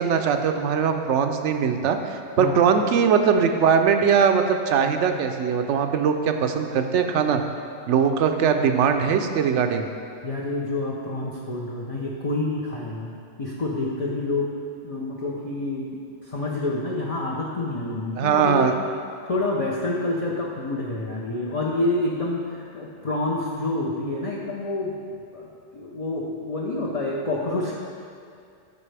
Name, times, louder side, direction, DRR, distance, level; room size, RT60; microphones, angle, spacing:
voice 1, 0.0-2.0 2.4-7.4 7.9-9.9 18.2-18.7, right 7 dB, 85° right, 6 dB, 0.9 m, -21 dB
voice 2, 10.2-13.1 13.4-14.5 14.8-18.7 19.2-25.0 25.3-27.7, left 2 dB, 35° left, -4 dB, 0.7 m, -28 dB
12.0 x 5.1 x 3.4 m, 2.4 s
omnidirectional pair, 1.2 m